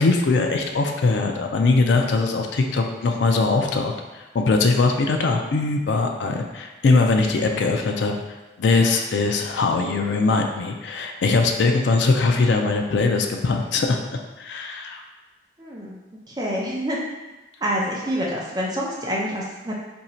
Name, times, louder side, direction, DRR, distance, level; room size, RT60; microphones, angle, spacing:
voice 1, 0.0-8.1 8.6-14.0 14.4-15.0, left 3 dB, 75° left, 3 dB, 0.4 m, -21 dB
voice 2, 15.6-16.0 16.3-17.0 17.6-19.7, equal, 20° right, -4 dB, 0.6 m, -27 dB
2.8 x 2.7 x 4.3 m, 1.2 s
head